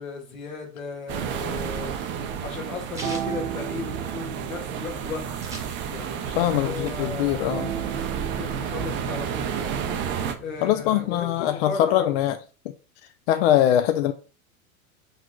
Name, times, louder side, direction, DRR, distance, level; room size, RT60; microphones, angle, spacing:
voice 1, 0.0-5.3 5.7-12.1, left 4 dB, 75° left, 1.6 m, -37 dB
sound 1, 1.1-10.3, right 8 dB, 30° right, 0.5 m, -31 dB
sound 2, 2.0-11.5, right 8 dB, 70° right, 0.6 m, -37 dB
sound 3, 3.0-4.4 4.7-4.8 5.0-6.3 6.6-7.8, right 2 dB, 10° right, 1.0 m, -42 dB
voice 2, 6.4-7.7 10.6-12.4 12.7-12.8 13.3-14.1, left 12 dB, 50° left, 0.4 m, -22 dB
4.8 x 4.0 x 2.3 m
hypercardioid pair, 95°, 42 cm